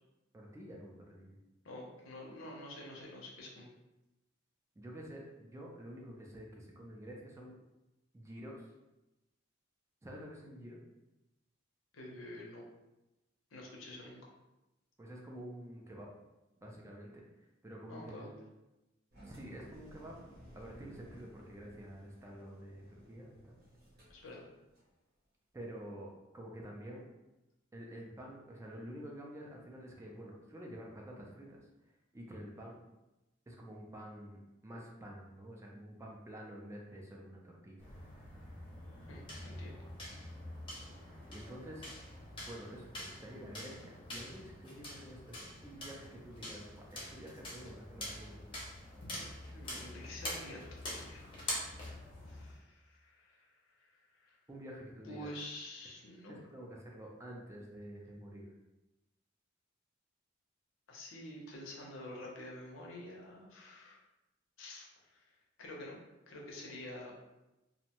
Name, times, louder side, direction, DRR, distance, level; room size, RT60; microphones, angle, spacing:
voice 1, 0.3-1.4 4.8-7.5 8.1-8.7 10.0-10.8 15.0-16.1 16.6-18.3 19.2-23.6 25.5-27.1 27.7-32.8 33.5-37.9 41.0-41.9 42.4-48.5 54.5-55.3 56.3-58.5, equal, 15° right, -1 dB, 0.3 m, -49 dB
voice 2, 1.6-3.7 11.9-12.7 13.5-14.2 17.9-18.3 24.1-24.4 39.1-39.9 49.0-49.2 49.5-51.4 52.3-54.4 55.1-56.4 60.9-64.0 64.6-66.0 66.3-67.1, left 1 dB, 75° left, -2 dB, 0.6 m, -48 dB
Engine, 19.1-24.9, equal, 55° right, 0.8 m, -58 dB
sound 1, 37.8-52.6, left 1 dB, 25° left, 0.7 m, -45 dB
2.6 x 2.1 x 2.8 m, 0.99 s
head